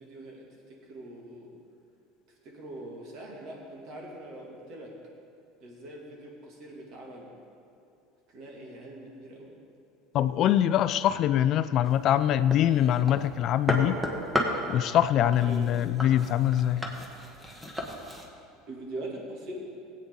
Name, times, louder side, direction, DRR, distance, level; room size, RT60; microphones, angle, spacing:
voice 1, 0.0-1.5 2.4-4.9 5.6-7.3 8.3-9.5 15.5-15.7 18.7-19.6, right 1 dB, 55° right, -2 dB, 2.6 m, -42 dB
voice 2, 10.1-14.0 14.7-16.8, left 11 dB, 45° left, 13 dB, 0.3 m, -24 dB
sound 1, 11.8-18.3, equal, 5° right, 1.3 m, -34 dB
17.0 x 8.5 x 3.9 m, 2.6 s
supercardioid pair, 140°, 0 cm